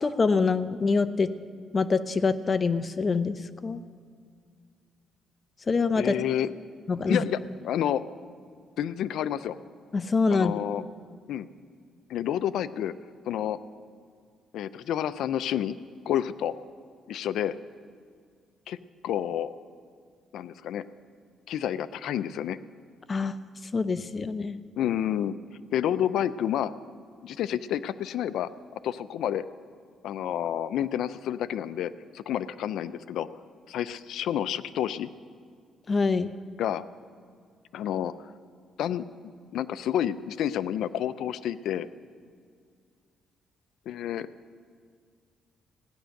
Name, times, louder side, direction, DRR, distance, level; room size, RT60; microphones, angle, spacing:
voice 1, 0.0-1.3 1.7-3.4 3.6-3.8 5.7-6.2 6.9-7.2 9.9-10.6 23.1-23.3 23.7-24.6 35.9-36.3, left 4 dB, 35° left, 12 dB, 0.7 m, -25 dB
voice 2, 6.0-6.5 7.1-7.4 7.6-8.0 8.8-9.6 10.3-10.8 11.3-11.5 12.1-12.9 13.3-13.6 14.5-15.8 16.1-16.5 17.1-17.5 18.7-18.8 19.0-19.5 20.3-20.9 21.5-22.6 24.8-25.3 25.7-26.7 27.2-28.5 28.8-29.5 30.0-33.3 33.7-35.1 36.6-36.8 37.7-38.1 38.8-39.0 39.5-41.9 43.9-44.3, left 10 dB, 80° left, 15 dB, 0.5 m, -29 dB
17.0 x 10.0 x 6.5 m, 2.1 s
cardioid pair, 90°, 0 cm